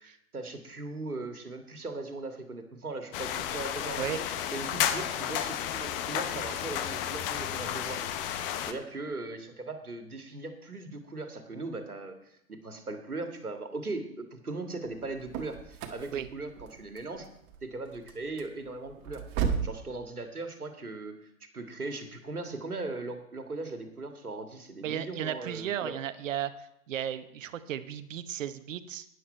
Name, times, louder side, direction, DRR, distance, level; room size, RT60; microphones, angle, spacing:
voice 1, 0.0-4.3 4.5-17.3 17.6-19.2 19.6-25.9, right 3 dB, 90° right, 7 dB, 1.9 m, -39 dB
sound 1, 3.1-8.7, left 10 dB, 40° left, 1.0 m, -32 dB
sound 2, 14.9-19.8, right 7 dB, 35° right, 1.6 m, -35 dB
voice 2, 24.8-26.5 26.9-29.1, right 10 dB, 60° right, 13 dB, 1.1 m, -34 dB
12.0 x 10.0 x 4.4 m, 0.80 s
figure-of-eight pair, 110°, 43 cm